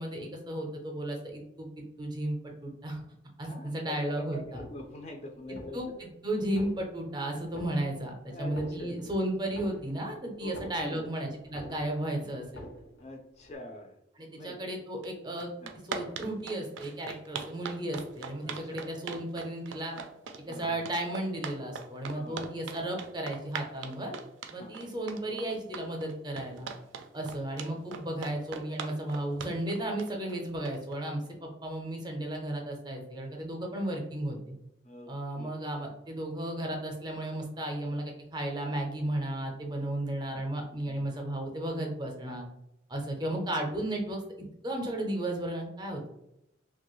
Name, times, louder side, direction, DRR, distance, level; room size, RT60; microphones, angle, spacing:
voice 1, 0.0-3.0 3.4-4.6 5.7-12.7 14.2-15.5 15.9-19.9 20.5-24.1 24.5-26.7 27.1-34.6 35.1-38.0 38.3-42.4 42.9-44.2 44.6-46.1, right 1 dB, 20° right, 1 dB, 0.5 m, -34 dB
voice 2, 3.4-5.9 8.3-9.0 10.4-11.4 13.0-14.0 14.4-14.6 15.6-15.7 18.4-18.9 20.5-20.8 22.1-22.5 24.6-24.7 27.7-27.8 34.8-35.6 40.8-41.1, left 1 dB, 35° left, 3 dB, 0.3 m, -44 dB
sound 1, 4.4-5.1 5.4-6.1 6.4-7.1 7.4-8.1 8.4-11.1 11.4-12.1 12.4-13.1 13.4-13.6, equal, 85° left, 0.9 m, -47 dB
sound 2, 15.0-15.1 15.4-31.0, right 6 dB, 75° right, 0.4 m, -40 dB
2.9 x 2.2 x 3.0 m, 0.82 s
head